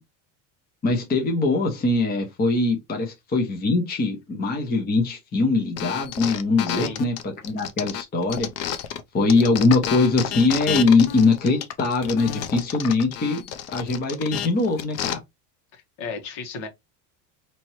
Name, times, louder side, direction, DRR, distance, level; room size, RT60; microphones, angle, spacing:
voice 1, 0.8-8.5 9.1-13.5 13.7-15.2, left 3 dB, 20° left, 0.9 m, -22 dB
sound 1, 5.8-9.0 9.3-15.1, left 10 dB, 35° left, 0.5 m, -30 dB
voice 2, 6.6-7.0 15.7-16.7, left 4 dB, 65° left, 1.6 m, -34 dB
4.2 x 3.1 x 2.9 m
cardioid pair, 150°, 45 cm